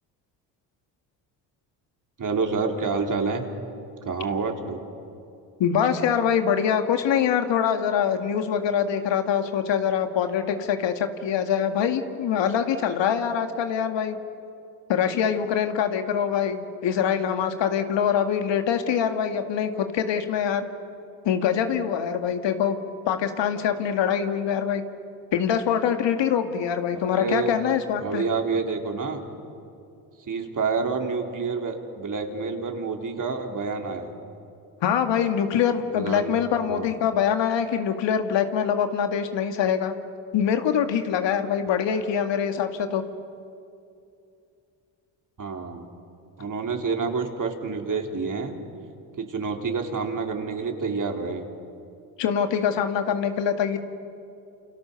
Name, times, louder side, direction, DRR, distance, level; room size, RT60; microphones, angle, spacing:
voice 1, 2.2-3.5 4.0-4.8 27.1-27.5 28.0-29.3 30.3-34.1 35.9-36.4 36.6-37.0 45.4-45.9 46.4-48.6 49.2-51.5, right 4 dB, 40° right, 3 dB, 3.9 m, -28 dB
voice 2, 5.6-14.2 14.9-20.7 21.2-22.8 23.1-24.8 25.3-28.2 34.8-39.9 40.3-43.0 52.2-53.8, left 8 dB, 60° left, 7 dB, 2.1 m, -24 dB
29.0 x 28.5 x 7.0 m, 2.6 s
hypercardioid pair, 60°, 49 cm